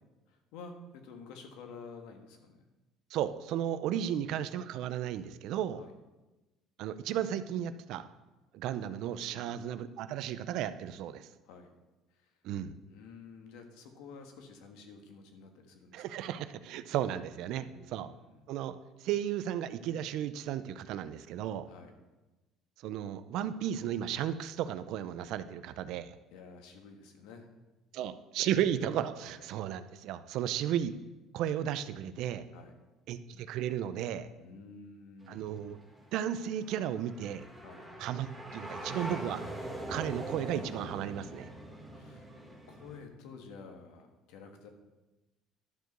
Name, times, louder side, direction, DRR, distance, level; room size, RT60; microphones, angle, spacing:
voice 1, 0.3-2.7 4.0-4.1 5.8-5.9 9.3-9.6 11.4-11.7 12.1-12.4 12.9-16.2 17.5-18.5 21.7-22.0 26.3-27.5 28.4-28.6 29.2-29.5 32.5-32.8 34.4-35.4 37.6-37.9 41.9-42.3 42.7-44.7, left 4 dB, 85° left, 4 dB, 1.5 m, -51 dB
voice 2, 3.1-5.8 6.8-8.1 8.5-11.3 12.4-12.7 15.9-18.1 18.5-21.7 22.8-26.2 27.9-30.9 31.3-32.4 33.1-34.3 35.3-35.8 36.1-37.4 38.0-39.4 39.9-41.5, right 10 dB, 70° right, 13 dB, 0.5 m, -34 dB
sound 1, 35.2-43.0, right 1 dB, ahead, 1.8 m, -43 dB
11.5 x 4.7 x 6.7 m, 1.1 s
cardioid pair, 120°, 0 cm